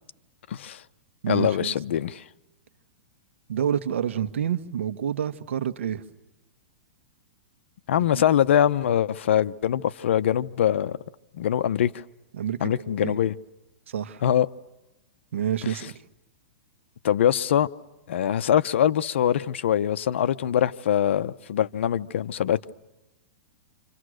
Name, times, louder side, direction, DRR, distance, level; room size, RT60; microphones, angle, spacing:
voice 1, 0.5-0.8 1.3-2.2 7.9-11.0 11.3-12.0 12.6-13.3 14.2-14.5 17.0-17.7 18.1-22.7, left 10 dB, 70° left, 13 dB, 0.9 m, -23 dB
voice 2, 1.2-1.7 3.5-6.0 8.1-8.2 12.3-13.2 13.9-14.2 15.3-15.9, right 9 dB, 80° right, 10 dB, 1.5 m, -28 dB
28.0 x 27.0 x 6.5 m, 1.0 s
hypercardioid pair, 140°, 7 cm